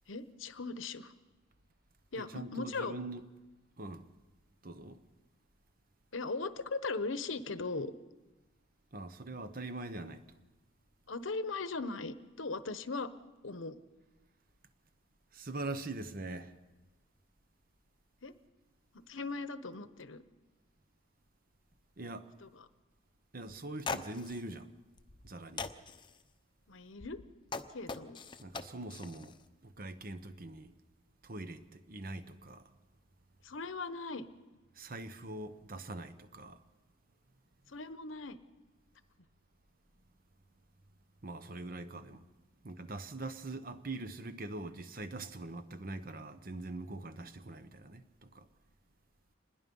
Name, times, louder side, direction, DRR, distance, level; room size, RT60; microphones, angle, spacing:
voice 1, 0.1-1.1 2.1-3.0 6.1-7.9 11.1-13.1 13.4-13.8 18.2-18.3 18.9-20.2 22.4-22.6 26.7-27.2 27.7-28.2 33.4-34.2 37.7-38.4, left 3 dB, 80° left, 1.0 m, -39 dB
voice 2, 2.2-3.3 3.8-4.1 4.6-5.0 8.9-10.2 15.3-16.5 22.0-22.3 23.3-24.7 25.2-25.7 28.4-29.4 29.6-30.7 31.2-32.7 34.7-36.6 41.2-42.2 42.6-48.5, right 2 dB, 45° right, 1.0 m, -43 dB
sound 1, 23.5-23.6 23.8-24.4 25.0-25.3 25.6-26.1 27.0-29.3, left 4 dB, 25° left, 0.7 m, -41 dB
25.5 x 20.5 x 5.5 m
head